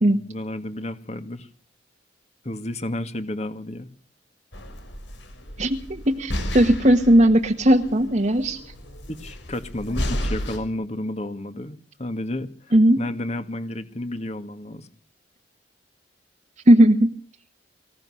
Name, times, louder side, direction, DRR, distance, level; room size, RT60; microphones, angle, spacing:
voice 1, 0.1-1.5 2.4-3.9 9.1-14.9, left 1 dB, 40° left, 9 dB, 2.2 m, -31 dB
sound 1, 4.5-10.6, equal, 85° left, 5.6 m, -32 dB
voice 2, 5.6-8.6 12.7-13.0 16.7-17.1, right 1 dB, 40° right, 3 dB, 1.4 m, -17 dB
24.5 x 16.5 x 6.5 m, 0.43 s
head